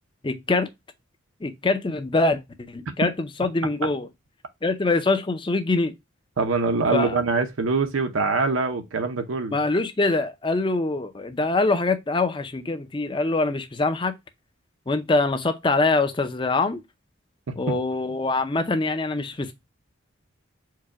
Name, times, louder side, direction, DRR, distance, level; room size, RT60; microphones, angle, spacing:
voice 1, 0.2-0.7 1.4-2.4 2.7-4.1 4.6-5.9 6.9-7.1 9.5-14.1 14.9-16.8 17.6-19.5, left 3 dB, 25° left, 0.5 m, -24 dB
voice 2, 6.4-9.6 17.5-17.8, right 4 dB, 80° right, 0.6 m, -24 dB
4.6 x 2.2 x 4.7 m
head